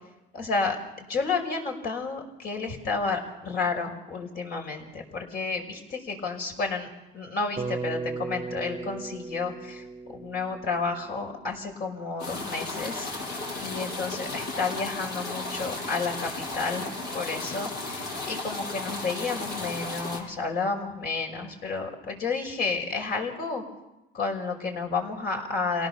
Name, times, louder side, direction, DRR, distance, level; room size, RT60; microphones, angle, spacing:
voice 1, 0.3-6.9 7.1-13.1 13.6-16.9 17.1-23.6 24.1-25.9, left 4 dB, 65° left, 2 dB, 5.8 m, -31 dB
Bass guitar, 7.6-11.9, right 4 dB, 25° right, 0.8 m, -37 dB
sound 1, 12.2-20.2, left 2 dB, 85° left, 7.8 m, -34 dB
28.0 x 18.0 x 7.0 m, 0.95 s
cardioid pair, 110°, 17 cm